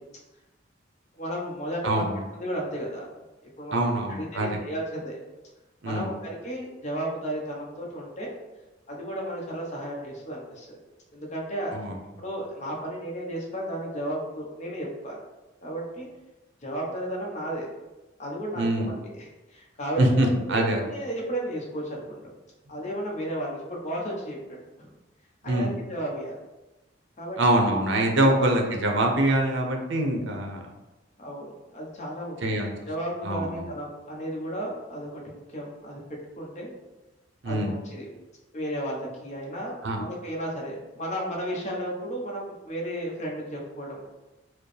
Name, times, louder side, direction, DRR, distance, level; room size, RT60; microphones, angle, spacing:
voice 1, 1.1-2.0 2.4-3.1 3.6-3.8 4.2-5.2 5.8-6.1 6.4-8.3 8.9-10.8 11.1-11.7 12.2-15.2 15.6-16.1 16.6-17.7 18.2-22.2 22.7-24.9 25.4-26.4 27.2-27.4 28.2-28.3 31.2-36.7 37.4-38.1 38.5-44.0, right 1 dB, 40° left, -2 dB, 0.8 m, -34 dB
voice 2, 1.8-2.2 3.7-4.6 5.8-6.1 11.7-12.0 18.5-18.9 20.0-20.8 25.4-25.7 27.4-30.6 32.4-32.7 33.2-33.7 37.4-37.7 39.8-40.1, right 1 dB, 70° right, 2 dB, 0.6 m, -24 dB
4.6 x 2.0 x 3.2 m, 1.1 s
head